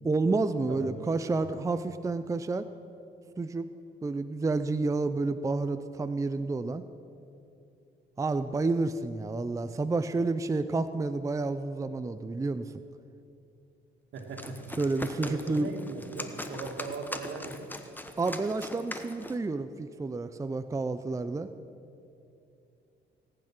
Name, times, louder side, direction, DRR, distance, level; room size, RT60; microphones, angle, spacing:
voice 1, 0.0-2.7 3.4-3.7 4.0-6.8 8.2-12.7 14.8-15.7 18.2-21.5, right 3 dB, 15° right, 11 dB, 0.5 m, -30 dB
voice 2, 0.7-1.4 14.1-14.7 15.2-17.7, right 4 dB, 75° right, 3 dB, 2.1 m, -39 dB
sound 1, 14.2-19.5, left 1 dB, 10° left, 1.0 m, -41 dB
18.5 x 8.8 x 6.0 m, 2.6 s
cardioid pair, 90°, 20 cm